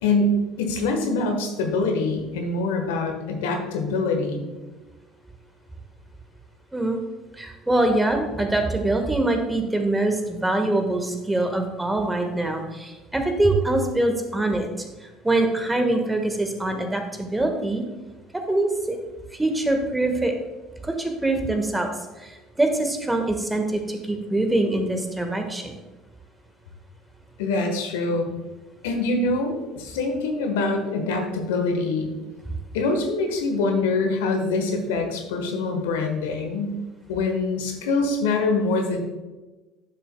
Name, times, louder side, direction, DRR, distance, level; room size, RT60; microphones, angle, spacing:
voice 1, 0.0-4.5 27.4-28.3 28.8-32.1 32.7-36.8 37.1-39.0, left 3 dB, 75° left, 3 dB, 1.3 m, -24 dB
voice 2, 7.4-14.7 15.2-17.8 18.3-19.0 19.3-20.3 20.8-21.9 22.2-25.7, right 2 dB, 10° right, 5 dB, 1.4 m, -24 dB
11.0 x 6.6 x 2.2 m, 1.2 s
hypercardioid pair, 60°, 0 cm